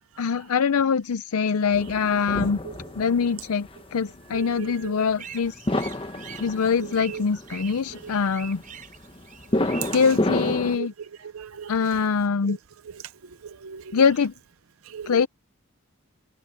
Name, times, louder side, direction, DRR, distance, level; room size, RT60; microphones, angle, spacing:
voice 1, 0.2-2.6 3.0-5.9 6.4-8.6 9.9-10.9 11.7-12.6 13.9-14.3 15.1-15.3, left 6 dB, 90° left, 0.5 m, -23 dB
sound 1, 1.7-10.8, left 1 dB, 25° left, 1.1 m, -30 dB
voice 2, 4.3-5.1 6.1-6.5 6.8-7.2 7.9-8.2 9.8-9.9 10.3-11.9 12.5-12.6 12.9-13.0 13.4-14.0 14.9-15.2, right 7 dB, 75° right, 0.6 m, -38 dB
sound 2, 5.2-10.2, right 7 dB, 35° right, 7.6 m, -44 dB
head